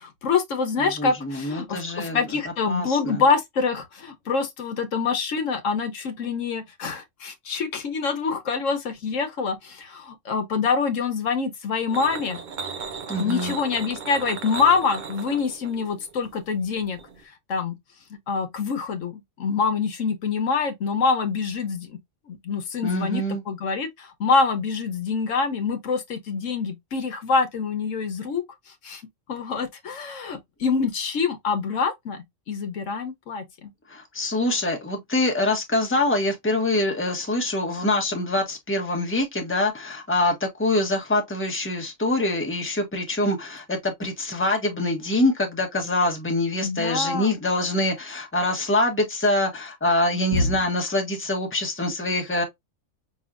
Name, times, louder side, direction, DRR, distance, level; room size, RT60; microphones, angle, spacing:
voice 1, 0.0-12.4 13.2-17.0 17.5-17.8 18.1-22.0 22.3-28.4 28.8-29.0 29.3-33.7 46.6-47.4 50.3-50.5, left 5 dB, 80° left, 1.3 m, -25 dB
voice 2, 0.8-2.4 2.7-3.2 13.1-13.5 22.8-23.4 33.9-52.4, left 1 dB, 10° left, 1.1 m, -25 dB
sound 1, 11.9-17.2, right 6 dB, 50° right, 0.7 m, -36 dB
5.4 x 2.8 x 2.4 m
omnidirectional pair, 1.3 m